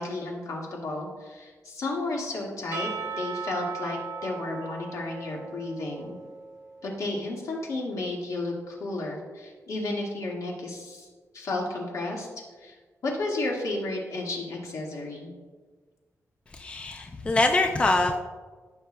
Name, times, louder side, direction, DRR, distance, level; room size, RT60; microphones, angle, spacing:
voice 1, 0.0-2.9 3.2-6.2 6.8-11.1 11.3-12.3 12.6-12.7 13.0-15.3, left 2 dB, 75° left, -2 dB, 1.8 m, -32 dB
Percussion / Church bell, 2.7-7.1, right 5 dB, 60° right, 1.1 m, -37 dB
voice 2, 16.5-18.2, left 2 dB, 20° left, 4 dB, 0.4 m, -24 dB
14.0 x 5.8 x 2.2 m, 1.4 s
wide cardioid pair, 175°, 6 cm